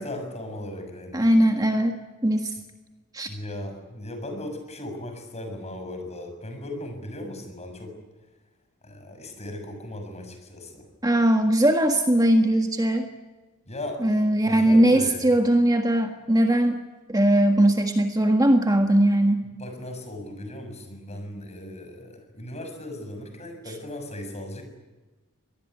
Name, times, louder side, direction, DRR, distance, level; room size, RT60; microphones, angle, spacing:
voice 1, 0.0-1.2 3.3-8.0 8.8-10.9 13.7-14.1 14.4-15.3 19.6-24.6, left 1 dB, 30° left, 5 dB, 6.6 m, -37 dB
voice 2, 1.1-2.5 3.1-3.3 11.0-13.1 14.0-16.8 17.1-19.4, right 1 dB, 15° right, 5 dB, 1.6 m, -20 dB
25.0 x 19.5 x 9.9 m, 1.2 s
head